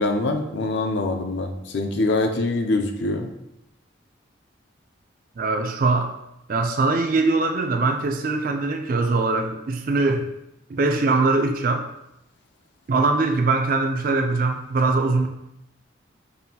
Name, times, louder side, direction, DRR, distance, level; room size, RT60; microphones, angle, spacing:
voice 1, 0.0-3.3, left 2 dB, 60° left, 5 dB, 0.4 m, -24 dB
voice 2, 5.4-6.1 6.5-10.3 10.7-11.9 12.9-15.3, right 3 dB, 45° right, 5 dB, 0.3 m, -22 dB
5.4 x 2.5 x 2.7 m, 0.84 s
head